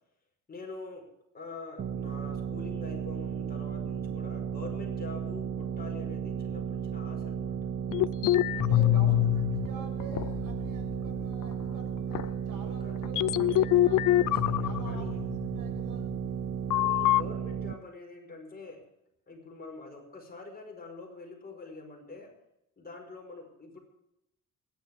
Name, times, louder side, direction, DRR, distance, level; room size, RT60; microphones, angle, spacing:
voice 1, 0.5-1.1 1.3-7.7 8.7-9.1 12.8-13.0 14.1-15.2 16.7-18.8 19.3-22.3 22.8-23.8, left 3 dB, 30° left, 1 dB, 4.9 m, -45 dB
sound 1, 1.8-17.7, right 8 dB, 40° right, 0.8 m, -34 dB
sound 2, 7.9-9.7 10.0-10.9 11.4-11.5 12.1-12.3 13.0-15.6 16.7-17.2, left 15 dB, 75° left, 0.5 m, -25 dB
voice 2, 8.6-14.0 14.6-16.1, right 3 dB, 80° right, 3 dB, 6.7 m, -47 dB
26.5 x 11.0 x 3.6 m, 0.84 s
cardioid pair, 125°, 32 cm